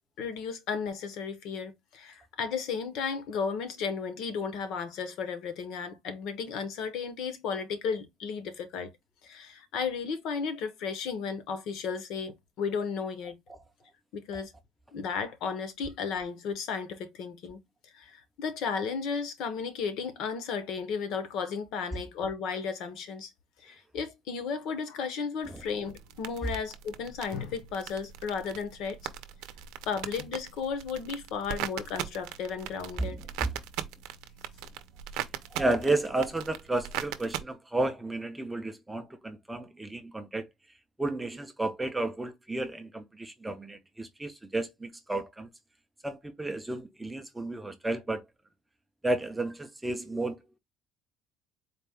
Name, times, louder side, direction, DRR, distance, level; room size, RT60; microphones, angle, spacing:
voice 1, 0.2-8.9 9.2-13.4 14.1-14.5 14.9-17.6 17.9-23.3 23.6-29.0 29.9-33.2, left 5 dB, 60° left, 0.9 m, -34 dB
sound 1, 25.4-37.4, right 11 dB, 85° right, 0.6 m, -40 dB
voice 2, 33.0-33.5 35.1-35.2 35.5-40.5 41.0-45.5 46.0-48.2 49.0-50.6, right 2 dB, 5° right, 0.4 m, -32 dB
4.1 x 2.2 x 3.4 m
cardioid pair, 160°, 0 cm